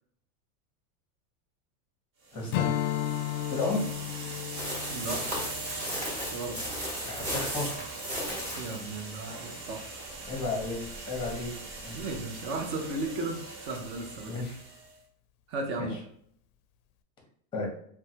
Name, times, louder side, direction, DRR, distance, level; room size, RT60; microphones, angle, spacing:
sound 1, 2.2-15.0, right 3 dB, 70° right, 1.3 m, -41 dB
voice 1, 2.3-2.7 3.5-3.9 7.0-7.8 10.3-10.8 11.1-11.5 11.8-12.0 14.2-14.6 15.8-15.9 17.5-17.7, left 3 dB, 10° left, -1 dB, 0.8 m, -32 dB
Strum, 2.5-7.2, left 12 dB, 70° left, 0.5 m, -34 dB
sound 2, 4.5-8.9, equal, 15° right, 1.0 m, -35 dB
voice 2, 4.9-5.2 6.3-6.6 8.6-10.0 11.9-14.4 15.5-16.0, right 2 dB, 30° right, 2 dB, 0.5 m, -35 dB
3.0 x 2.2 x 2.7 m, 0.67 s
supercardioid pair, 155°, 45 cm